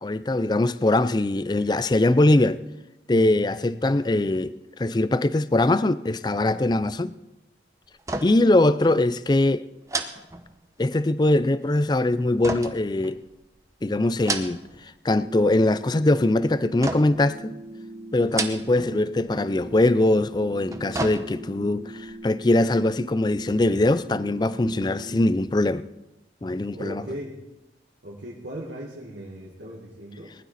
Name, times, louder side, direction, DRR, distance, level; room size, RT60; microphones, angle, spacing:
voice 1, 0.0-2.6 3.1-7.1 8.2-9.6 10.8-13.2 13.8-14.6 15.0-17.5 18.1-25.9 26.4-27.0, left 2 dB, 25° left, 0.4 m, -22 dB
sound 1, 8.0-8.6 8.8-9.0 9.9-11.0 12.4-13.5 14.1-14.9 15.2-15.7 16.8-17.3 18.2-19.0 19.2-19.4 20.5-21.6 22.1-22.2, right 3 dB, 15° right, 0.8 m, -32 dB
sound 2, 15.2-25.2, right 1 dB, 45° right, 2.9 m, -41 dB
voice 2, 26.7-27.4 28.0-30.4, equal, 80° right, 2.1 m, -38 dB
19.5 x 12.0 x 4.2 m
head